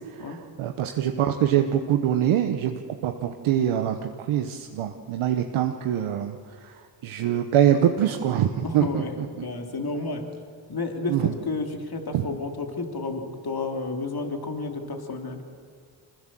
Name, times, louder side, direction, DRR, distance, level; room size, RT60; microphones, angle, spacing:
voice 1, 0.1-6.4 6.6-6.8 7.0-9.0 11.1-11.3 12.1-12.2, right 10 dB, 85° right, 5 dB, 1.1 m, -24 dB
voice 2, 8.6-10.2 10.7-15.4, left 3 dB, 50° left, 3 dB, 3.3 m, -31 dB
25.0 x 20.5 x 7.6 m, 2.1 s
supercardioid pair, 40°, 48 cm